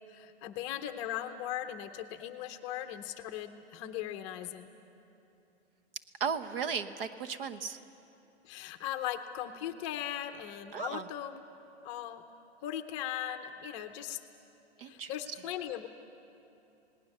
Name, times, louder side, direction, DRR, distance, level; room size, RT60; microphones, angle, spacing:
voice 1, 0.1-4.7 8.4-11.4 11.8-12.2 12.6-14.2 14.8-15.9, left 11 dB, 25° left, 8 dB, 0.7 m, -38 dB
voice 2, 6.2-7.8 10.7-11.1 14.8-15.1, right 6 dB, 55° right, 10 dB, 1.1 m, -35 dB
27.5 x 18.5 x 6.6 m, 2.8 s
hypercardioid pair, 150°, 34 cm